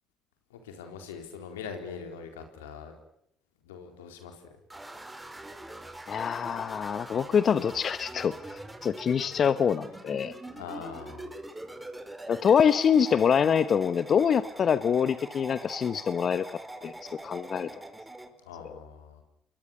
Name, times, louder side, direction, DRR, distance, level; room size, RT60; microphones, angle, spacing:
voice 1, 0.5-2.9 3.6-4.4 10.5-11.3 18.5-19.2, left 6 dB, 90° left, 6 dB, 4.1 m, -42 dB
sound 1, 4.7-18.3, right 1 dB, 15° right, 4.7 m, -43 dB
voice 2, 6.1-10.3 12.3-16.4 16.8-17.7, left 7 dB, 50° left, 14 dB, 1.1 m, -25 dB
29.5 x 23.0 x 6.7 m, 0.74 s
hypercardioid pair, 55°, 0 cm